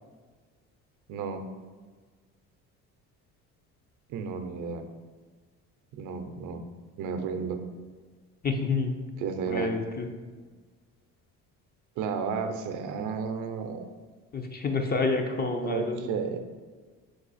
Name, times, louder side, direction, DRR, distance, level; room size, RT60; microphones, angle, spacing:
voice 1, 1.1-1.4 4.1-4.9 5.9-6.6 7.0-7.7 9.2-9.7 12.0-13.8 15.6-16.4, right 6 dB, 65° right, 7 dB, 0.5 m, -32 dB
voice 2, 8.4-8.9 9.5-10.1 14.3-16.1, left 3 dB, 30° left, 4 dB, 0.5 m, -28 dB
4.7 x 2.3 x 4.0 m, 1.4 s
supercardioid pair, 80°, 34 cm